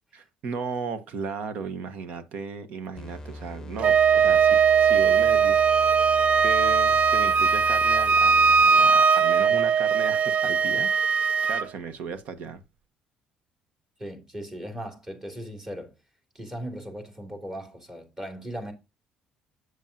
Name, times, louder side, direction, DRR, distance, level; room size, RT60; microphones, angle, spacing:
voice 1, 0.1-5.7 6.4-12.6, right 5 dB, 70° right, 1.2 m, -35 dB
sound 1, 3.0-8.9, equal, 25° left, 0.7 m, -41 dB
Wind instrument woodwind instrument, 3.8-11.7, right 6 dB, 55° right, 0.5 m, -20 dB
voice 2, 14.0-15.9 16.3-18.7, equal, 20° right, 2.9 m, -38 dB
8.0 x 7.3 x 2.7 m
cardioid pair, 105°, 3 cm